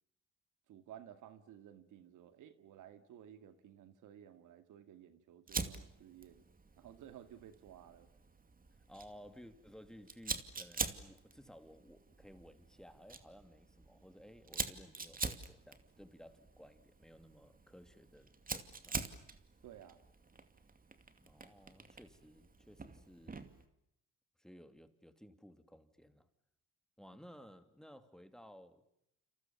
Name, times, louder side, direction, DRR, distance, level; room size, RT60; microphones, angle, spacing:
voice 1, 0.7-6.4 6.8-8.1 19.6-20.0 27.4-27.5, right 10 dB, 85° right, 2.3 m, -55 dB
Fire, 5.5-23.6, right 4 dB, 30° right, 2.5 m, -46 dB
voice 2, 8.9-19.2 21.2-23.5 24.4-26.3 27.0-28.8, equal, ahead, 2.8 m, -57 dB
29.5 x 27.5 x 7.3 m
cardioid pair, 90°, 30 cm